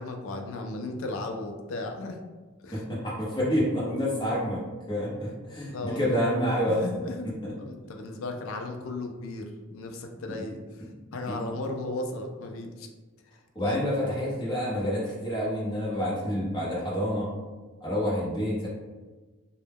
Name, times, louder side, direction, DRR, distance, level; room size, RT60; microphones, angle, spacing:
voice 1, 0.0-2.2 2.6-2.8 5.7-6.2 6.7-7.3 7.6-12.9 13.2-13.8 14.3-14.4, left 2 dB, 70° left, 4 dB, 0.3 m, -36 dB
voice 2, 2.7-4.6 4.9-6.8 7.2-7.5 10.3-10.4 11.3-11.4 13.5-17.3 17.8-18.7, equal, 20° left, -7 dB, 0.7 m, -28 dB
2.1 x 2.1 x 3.3 m, 1.3 s
head